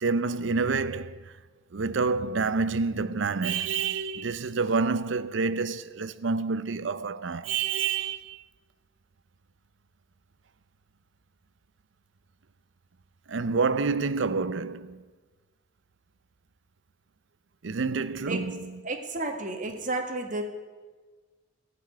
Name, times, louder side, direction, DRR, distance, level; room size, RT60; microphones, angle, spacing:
voice 1, 0.0-1.3 1.7-8.4 13.3-15.0 17.6-18.7, right 4 dB, 70° right, 0.6 m, -28 dB
voice 2, 18.8-20.4, right 2 dB, 45° right, 1.7 m, -32 dB
14.0 x 7.0 x 9.4 m
head